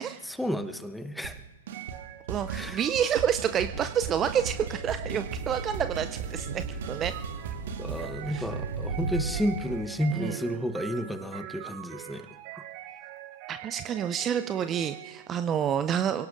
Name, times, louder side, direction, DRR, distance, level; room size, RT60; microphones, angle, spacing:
voice 1, 0.2-1.4 2.5-2.8 7.8-12.3, equal, ahead, 9 dB, 0.9 m, -31 dB
sound 1, 1.2-1.4 1.7-2.0 2.3-8.1, right 6 dB, 60° right, 1.5 m, -38 dB
sound 2, 1.7-15.4, right 13 dB, 40° right, 0.9 m, -44 dB
voice 2, 2.3-7.1 8.3-8.5 10.1-10.4 12.5-12.6 13.5-16.3, right 9 dB, 25° right, 11 dB, 0.5 m, -29 dB
sound 3, 3.7-9.8, right 3 dB, 80° right, 3.7 m, -37 dB
28.5 x 17.5 x 2.5 m, 1.4 s
figure-of-eight pair, 115°, 0 cm